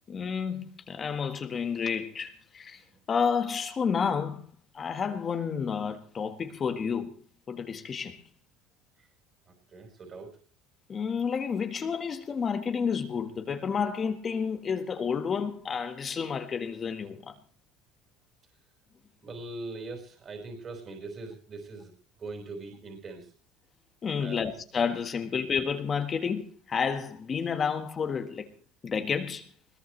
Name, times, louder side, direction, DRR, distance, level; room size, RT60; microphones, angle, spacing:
voice 1, 0.1-2.8 3.1-4.4 4.7-7.2 7.5-8.2 10.9-17.3 24.0-28.5 28.8-29.5, left 6 dB, 30° left, 1.6 m, -30 dB
voice 2, 9.5-10.4 19.2-21.9 22.2-23.3 24.2-24.5, right 3 dB, 30° right, 4.9 m, -41 dB
20.5 x 20.5 x 3.3 m
supercardioid pair, 125°, 0 cm